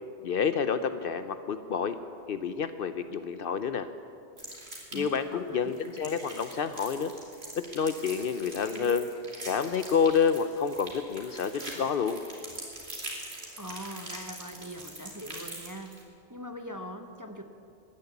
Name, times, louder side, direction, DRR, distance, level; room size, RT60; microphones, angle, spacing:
voice 1, 0.2-2.0 2.3-3.9 4.9-7.1 7.7-9.1 9.5-12.2, left 6 dB, 60° left, 11 dB, 0.7 m, -28 dB
sound 1, 4.4-5.2 5.7-16.0, right 2 dB, 65° right, 2.8 m, -43 dB
voice 2, 4.9-5.8 8.7-8.9 13.6-16.0 16.3-17.4, equal, 20° right, 5 dB, 0.6 m, -41 dB
14.0 x 10.5 x 8.3 m, 2.5 s
omnidirectional pair, 1.2 m